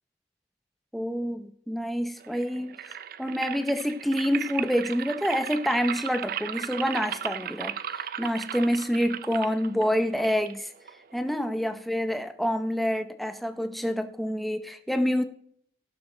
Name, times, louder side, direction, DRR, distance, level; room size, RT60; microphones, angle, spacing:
voice 1, 0.9-10.7 11.1-15.2, equal, ahead, 7 dB, 0.7 m, -27 dB
sound 1, 2.2-11.2, right 9 dB, 55° right, 0.4 m, -36 dB
16.5 x 6.4 x 3.9 m, 0.63 s
head